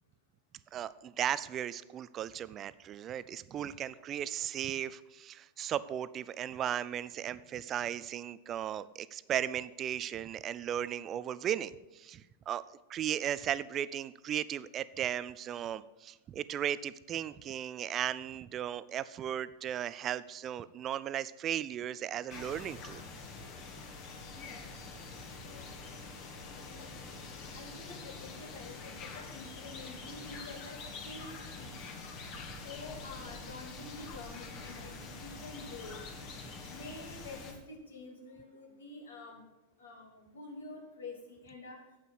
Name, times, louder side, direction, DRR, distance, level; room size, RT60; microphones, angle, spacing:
voice 1, 0.7-12.6 12.9-23.0 36.4-36.5, right 10 dB, 30° right, 17 dB, 0.5 m, -36 dB
sound 1, 22.3-37.5, left 4 dB, 40° left, 2.1 m, -45 dB
voice 2, 25.4-26.1 26.4-31.8 32.5-36.0 36.7-39.4 39.8-41.8, left 2 dB, 70° left, 1 dB, 3.0 m, -48 dB
9.3 x 8.2 x 8.1 m, 1.1 s
figure-of-eight pair, 90°, 0 cm